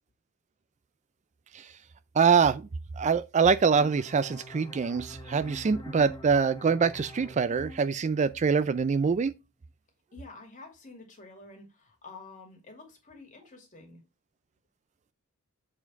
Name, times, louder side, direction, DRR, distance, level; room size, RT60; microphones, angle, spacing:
voice 1, 2.2-2.6 3.0-9.3, right 5 dB, 35° right, 0.3 m, -24 dB
sound 1, 3.7-9.1, equal, 20° left, 1.2 m, -47 dB
voice 2, 10.1-14.0, left 3 dB, 35° left, 2.4 m, -49 dB
7.1 x 4.4 x 4.4 m
head